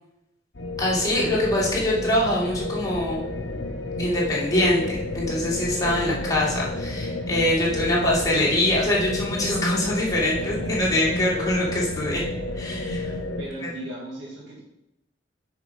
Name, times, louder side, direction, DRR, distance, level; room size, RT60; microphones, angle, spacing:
sound 1, 0.5-13.4, left 1 dB, 75° left, 1.0 m, -31 dB
voice 1, 0.8-3.3 4.0-12.3 12.5-13.1, left 1 dB, 20° left, -5 dB, 2.3 m, -24 dB
voice 2, 10.3-10.7 13.4-14.6, right 1 dB, 80° right, -4 dB, 1.9 m, -37 dB
6.7 x 5.2 x 5.2 m, 0.88 s
head